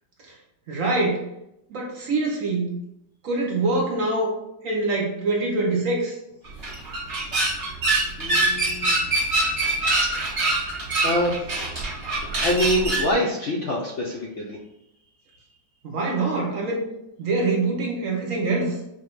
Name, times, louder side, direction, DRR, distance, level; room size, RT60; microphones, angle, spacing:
voice 1, 0.7-1.3 1.7-2.7 3.2-4.3 4.6-6.2 12.2-12.3 15.8-16.9 17.2-18.8, right 2 dB, 60° right, -1 dB, 1.0 m, -24 dB
sound 1, 6.5-13.1, right 2 dB, 25° right, 1.1 m, -24 dB
voice 2, 8.2-9.0 10.0-10.5 11.0-11.5 12.4-14.6, equal, 60° left, -2 dB, 0.8 m, -26 dB
5.3 x 2.2 x 4.0 m, 0.83 s
omnidirectional pair, 1.8 m